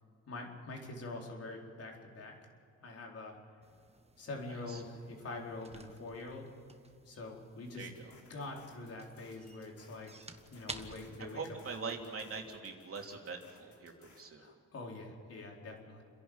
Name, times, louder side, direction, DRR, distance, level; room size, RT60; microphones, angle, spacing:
voice 1, 0.3-2.4 2.8-3.4 4.2-6.5 7.1-7.9 8.3-10.2 10.5-11.6 14.4-16.0, left 2 dB, 50° left, 0 dB, 4.4 m, -45 dB
sound 1, 3.6-12.6, right 3 dB, 20° right, 1.4 m, -53 dB
voice 2, 4.5-4.8 7.8-8.1 11.2-14.5, right 4 dB, 50° right, 2 dB, 3.2 m, -43 dB
sound 2, 7.7-14.2, left 4 dB, 70° left, 3.8 m, -63 dB
29.5 x 11.0 x 8.9 m, 2.4 s
cardioid pair, 90°, 30 cm